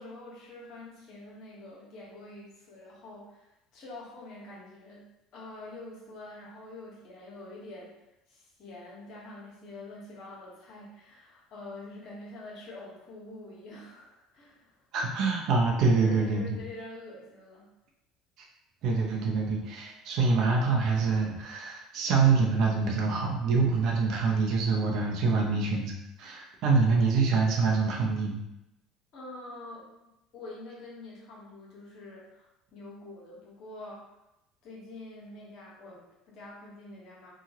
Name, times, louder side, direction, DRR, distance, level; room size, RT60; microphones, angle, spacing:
voice 1, 0.0-5.1 5.3-7.9 8.3-14.8 15.9-17.7 29.1-34.1 34.6-37.3, left 2 dB, 60° left, -4 dB, 1.1 m, -46 dB
voice 2, 14.9-16.6 18.8-28.4, right 4 dB, 60° right, 0 dB, 0.7 m, -25 dB
2.9 x 2.3 x 2.8 m, 0.90 s
hypercardioid pair, 75°, 0 cm